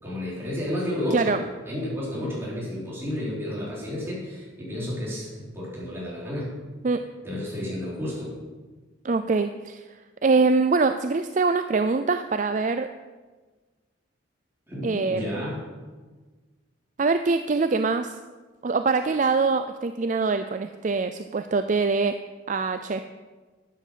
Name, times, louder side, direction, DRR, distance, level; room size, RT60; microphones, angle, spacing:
voice 1, 0.0-1.4 1.6-6.5 7.2-8.3 14.7-15.7, left 1 dB, 10° right, -7 dB, 4.5 m, -31 dB
voice 2, 9.0-9.8 10.2-12.9 14.8-15.4 17.0-18.2 18.6-22.2 22.5-23.0, right 4 dB, 40° right, 9 dB, 0.4 m, -24 dB
11.5 x 9.1 x 6.8 m, 1.3 s
head